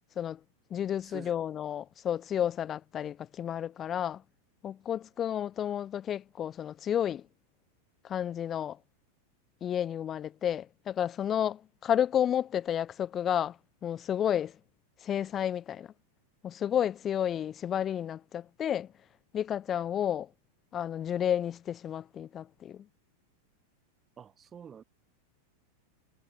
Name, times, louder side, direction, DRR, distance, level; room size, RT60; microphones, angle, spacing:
voice 1, 0.7-4.2 4.6-7.3 8.0-8.8 9.6-14.6 15.0-15.9 16.4-18.9 19.3-20.3 20.7-22.9, left 9 dB, 25° left, 0.4 m, -31 dB
voice 2, 24.2-24.8, right 7 dB, 20° right, 5.0 m, -47 dB
figure-of-eight pair, 90°, 0 cm